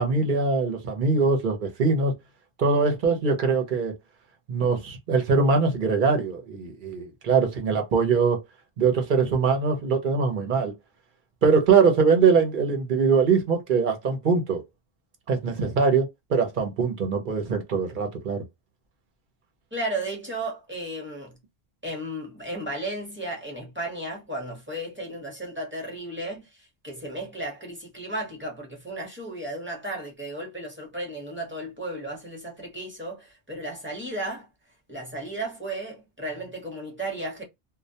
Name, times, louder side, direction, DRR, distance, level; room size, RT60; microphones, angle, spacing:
voice 1, 0.0-2.1 2.6-3.9 4.5-8.4 8.8-10.7 11.4-14.6 15.3-18.4, right 5 dB, 60° right, 0.8 m, -22 dB
voice 2, 19.7-21.4 21.8-34.5 34.9-37.4, right 1 dB, 10° right, 0.8 m, -34 dB
2.2 x 2.1 x 2.7 m
omnidirectional pair, 1.0 m